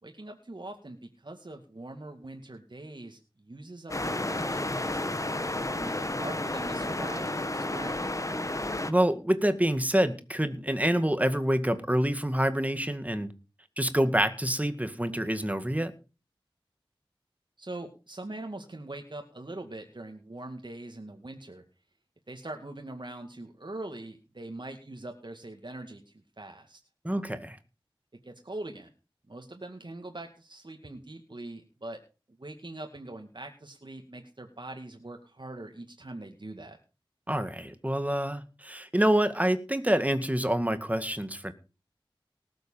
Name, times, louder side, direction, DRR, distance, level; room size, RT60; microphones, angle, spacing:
voice 1, 0.0-8.0 17.6-21.6 22.3-26.8 28.2-28.9 29.3-32.0 32.4-36.8, right 2 dB, 55° right, 4 dB, 2.2 m, -42 dB
sound 1, 3.9-8.9, left 1 dB, 35° left, 1.5 m, -31 dB
voice 2, 8.9-13.3 13.8-15.9 27.0-27.6 37.3-41.5, right 1 dB, 15° right, 10 dB, 1.9 m, -27 dB
19.0 x 7.9 x 5.6 m, 0.33 s
wide cardioid pair, 50°, 9 cm